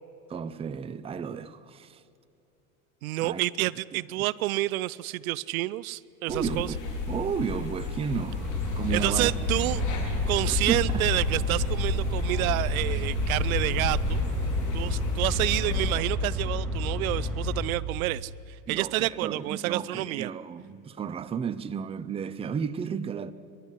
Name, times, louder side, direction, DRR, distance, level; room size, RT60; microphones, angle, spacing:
voice 1, 0.3-2.0 3.2-3.4 4.2-4.3 6.3-6.8 7.1-8.5 8.8-9.3 10.4-11.1 18.7-23.3, right 7 dB, 15° right, 0.6 m, -33 dB
voice 2, 3.0-6.7 8.9-9.8 10.3-14.2 14.7-18.3 18.7-20.3, right 18 dB, 80° right, 0.6 m, -29 dB
sound 1, 6.3-16.0, left 4 dB, 45° left, 5.1 m, -33 dB
sound 2, 8.3-17.7, left 1 dB, ahead, 3.7 m, -30 dB
27.5 x 12.0 x 10.0 m
supercardioid pair, 125°, 41 cm